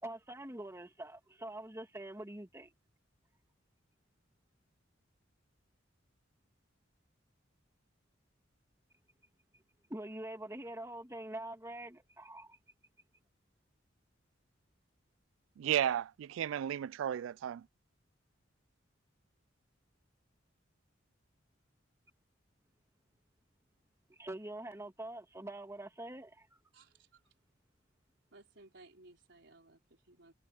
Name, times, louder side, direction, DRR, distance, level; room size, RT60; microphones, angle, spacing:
voice 1, 0.0-2.7 9.9-12.6 24.1-26.5, right 1 dB, 15° right, 2.5 m, -45 dB
voice 2, 15.6-17.7, right 10 dB, 85° right, 0.3 m, -33 dB
voice 3, 26.7-27.2 28.3-30.3, right 2 dB, 65° right, 4.8 m, -59 dB
head